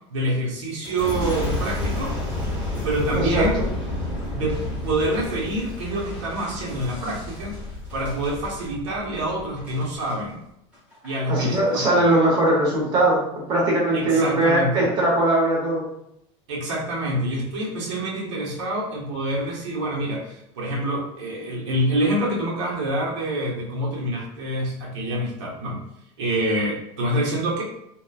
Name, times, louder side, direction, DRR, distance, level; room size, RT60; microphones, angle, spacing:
voice 1, 0.1-2.1 2.8-3.6 4.3-7.6 7.9-10.4 11.0-12.1 13.9-14.9 16.5-25.8 26.2-27.6, right 1 dB, 80° right, -3 dB, 0.9 m, -26 dB
Boom, 0.8-10.2 10.7-11.2, left 2 dB, 10° right, 1.0 m, -31 dB
voice 2, 3.1-3.7 11.3-13.2 13.5-15.9, right 1 dB, 30° right, -4 dB, 0.9 m, -20 dB
2.9 x 2.1 x 2.3 m, 0.77 s
supercardioid pair, 160°, 15 cm